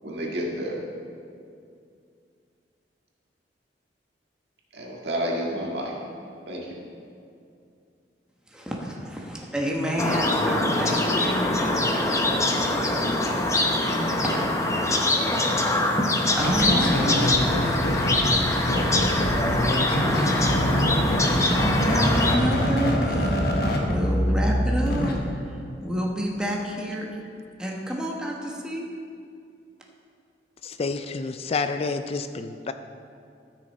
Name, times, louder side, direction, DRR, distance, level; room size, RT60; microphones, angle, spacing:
voice 1, 0.0-0.8 4.7-5.9 6.5-6.8, equal, 70° right, -2 dB, 1.8 m, -30 dB
voice 2, 8.5-13.1 13.3-14.3 16.3-17.8 20.9-25.2 25.8-27.1 27.6-28.9, equal, 5° right, -2 dB, 1.1 m, -29 dB
sound 1, 10.0-22.4, left 1 dB, 20° left, 0.7 m, -24 dB
sound 2, 16.4-25.1, equal, 60° left, 1.2 m, -24 dB
voice 3, 30.6-32.7, left 4 dB, 35° left, 9 dB, 0.3 m, -29 dB
13.5 x 6.3 x 4.1 m, 2.4 s
head